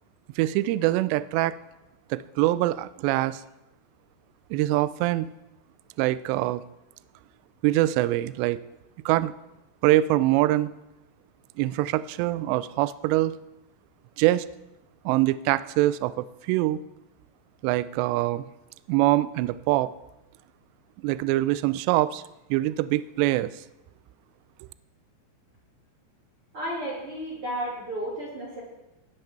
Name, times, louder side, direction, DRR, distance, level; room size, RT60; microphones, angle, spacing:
voice 1, 0.4-1.6 2.1-3.4 4.5-5.3 6.0-6.6 7.6-8.6 9.1-9.3 9.8-10.7 11.6-13.3 14.2-14.5 15.1-16.8 17.6-18.5 18.9-19.9 21.0-22.2 22.5-23.5, right 16 dB, 80° right, 16 dB, 2.6 m, -24 dB
voice 2, 26.5-28.6, right 1 dB, 35° right, -4 dB, 3.1 m, -33 dB
19.0 x 11.0 x 4.5 m, 0.95 s
omnidirectional pair, 5.3 m